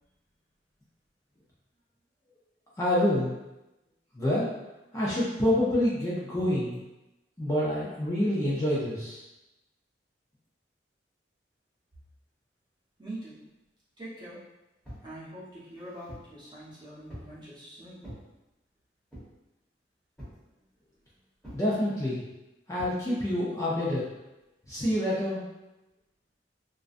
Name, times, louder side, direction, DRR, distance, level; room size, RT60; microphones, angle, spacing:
voice 1, 2.8-3.3 4.1-4.5 4.9-6.8 7.4-9.2 21.5-22.2 22.7-24.0 24.7-25.4, left 1 dB, 15° left, -8 dB, 0.4 m, -27 dB
voice 2, 13.0-13.4 14.0-14.4 15.0-18.0, right 1 dB, 25° right, -10 dB, 0.8 m, -43 dB
sound 1, 14.8-15.1 15.7-16.3 17.1-17.4 18.0-18.3 19.1-19.4 20.2-20.5 21.4-21.7 22.8-23.0, equal, ahead, 0.9 m, -45 dB
2.4 x 2.1 x 2.4 m, 0.96 s
head